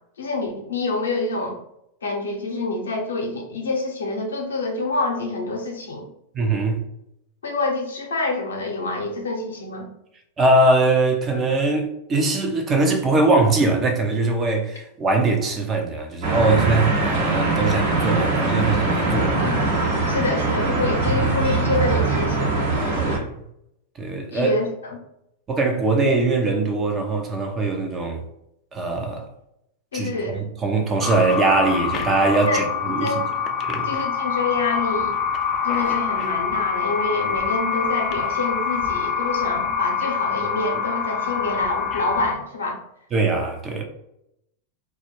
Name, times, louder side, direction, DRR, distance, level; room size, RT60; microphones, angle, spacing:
voice 1, 0.2-1.6 2.0-6.1 7.4-9.9 19.4-19.7 20.1-22.8 23.0-23.2 24.3-25.0 29.9-30.4 32.4-32.7 33.0-33.3 33.8-35.1 35.6-42.8, left 3 dB, 80° left, 0.6 m, -27 dB
voice 2, 6.3-6.8 10.4-19.5 20.1-20.2 23.1-23.3 24.0-24.5 25.5-28.2 28.7-29.3 29.9-33.1 33.6-34.0 43.1-43.8, right 2 dB, 30° right, 0.6 m, -21 dB
sound 1, 16.2-23.2, right 3 dB, 60° right, 0.9 m, -22 dB
sound 2, 31.0-42.4, left 6 dB, 35° left, 0.4 m, -25 dB
2.3 x 2.1 x 3.0 m
hypercardioid pair, 100°, 0 cm